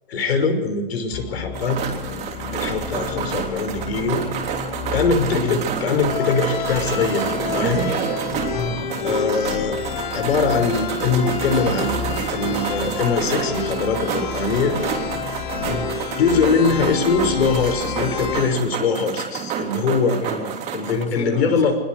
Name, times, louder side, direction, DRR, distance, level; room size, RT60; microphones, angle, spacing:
voice 1, 0.1-1.8 2.5-4.2 4.9-7.9 9.0-9.8 10.1-12.0 12.3-14.8 16.2-20.2 20.7-21.8, left 4 dB, 85° left, 6 dB, 5.8 m, -22 dB
sound 1, 1.1-18.6, left 6 dB, 50° left, 2.7 m, -29 dB
sound 2, 1.5-21.0, right 7 dB, 20° right, 3.0 m, -29 dB
voice 2, 8.5-9.1 15.6-15.9 20.2-21.6, left 3 dB, 25° left, 2 dB, 7.3 m, -30 dB
26.0 x 21.5 x 4.9 m, 1.2 s
hypercardioid pair, 160°, 30 cm